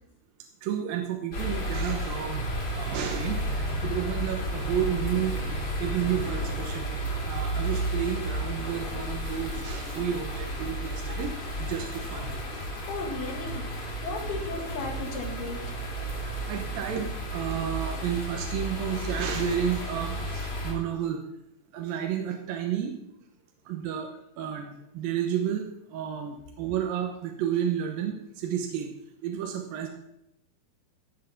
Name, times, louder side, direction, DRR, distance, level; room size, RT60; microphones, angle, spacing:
voice 1, 0.6-5.4 5.8-6.9 7.2-11.3 11.6-12.6 16.2-17.1 17.3-21.2 21.7-22.9 23.7-24.1 24.4-28.9 29.2-29.9, right 9 dB, 70° right, 2 dB, 2.5 m, -31 dB
sound 1, 1.3-20.7, right 1 dB, 30° left, 3.6 m, -32 dB
voice 2, 12.6-13.6 14.0-15.8, left 4 dB, 70° left, 2 dB, 3.6 m, -35 dB
15.5 x 7.4 x 5.8 m, 0.82 s
omnidirectional pair, 4.7 m